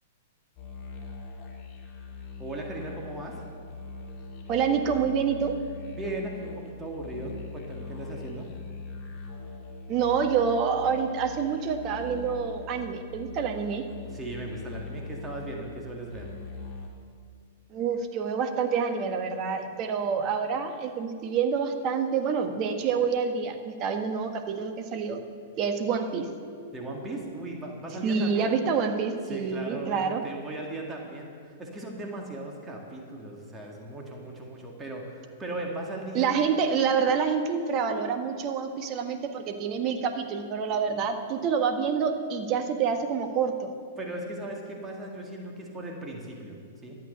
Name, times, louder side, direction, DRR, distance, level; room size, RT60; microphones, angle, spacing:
sound 1, 0.6-16.9, left 4 dB, 35° left, 2.6 m, -41 dB
voice 1, 2.4-3.4 5.9-8.5 14.1-16.3 26.7-28.5 29.3-36.5 44.0-47.0, right 1 dB, 15° right, 0 dB, 1.9 m, -37 dB
voice 2, 4.5-5.6 9.9-13.9 17.7-25.2 25.6-26.3 28.0-30.2 36.1-43.7, right 6 dB, 35° right, 6 dB, 1.4 m, -27 dB
13.0 x 8.8 x 6.7 m, 2.2 s
hypercardioid pair, 110°, 0 cm